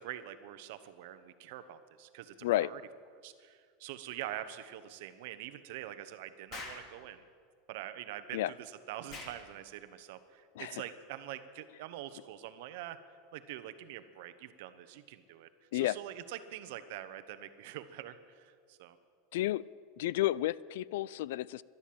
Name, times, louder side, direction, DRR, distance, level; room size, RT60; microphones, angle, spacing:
voice 1, 0.0-2.8 3.1-7.2 7.7-19.0, right 12 dB, 60° right, 11 dB, 1.0 m, -45 dB
Explosion, 6.5-6.9 9.1-9.4, left 3 dB, 35° left, 2.6 m, -43 dB
voice 2, 19.3-19.6 20.0-21.6, left 15 dB, 70° left, 22 dB, 0.3 m, -31 dB
12.0 x 12.0 x 8.7 m, 2.1 s
supercardioid pair, 155°, 0 cm